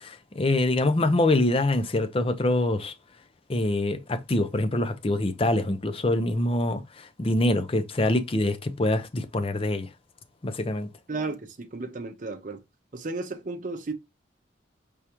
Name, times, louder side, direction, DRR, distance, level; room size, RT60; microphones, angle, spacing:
voice 1, 0.0-2.9 3.5-6.8 7.2-9.9 10.4-10.9, left 1 dB, 30° left, 0.5 m, -25 dB
voice 2, 11.1-12.6 12.9-13.9, right 3 dB, 40° right, 0.6 m, -33 dB
4.7 x 3.5 x 2.9 m
head